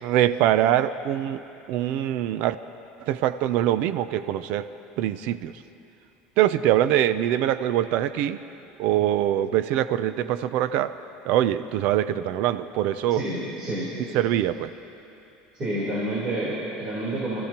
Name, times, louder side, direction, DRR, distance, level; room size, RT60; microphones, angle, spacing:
voice 1, 0.0-2.6 3.0-4.7 5.0-5.6 6.4-8.4 8.8-11.0 11.2-13.2 14.1-14.7, right 12 dB, 55° right, 13 dB, 0.5 m, -23 dB
voice 2, 13.1-14.0 15.5-17.4, right 1 dB, 25° right, -8 dB, 3.6 m, -29 dB
29.0 x 15.0 x 2.9 m, 2.9 s
cardioid pair, 170°, 3 cm